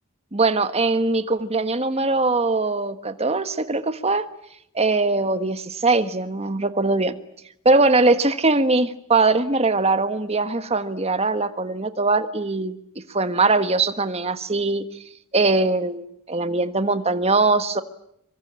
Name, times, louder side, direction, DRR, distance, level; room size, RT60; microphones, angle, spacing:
voice 1, 0.3-4.2 4.7-7.2 7.6-12.8 13.1-14.9 15.3-17.8, right 3 dB, 30° right, 11 dB, 1.5 m, -21 dB
25.5 x 24.0 x 8.9 m, 0.74 s
head